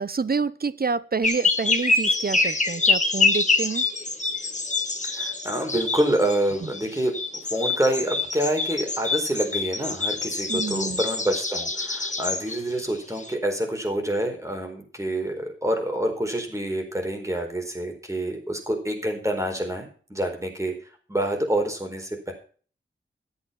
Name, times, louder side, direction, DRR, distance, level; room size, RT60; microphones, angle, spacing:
voice 1, 0.0-3.9 6.6-6.7 10.5-11.0, right 4 dB, 45° right, 17 dB, 0.8 m, -28 dB
sound 1, 1.2-13.3, left 3 dB, 35° left, 1.9 m, -26 dB
voice 2, 5.0-7.1 7.5-20.7 21.1-22.3, right 1 dB, 15° right, 3 dB, 4.4 m, -27 dB
13.5 x 8.9 x 5.7 m, 0.42 s
wide cardioid pair, 80°, 21 cm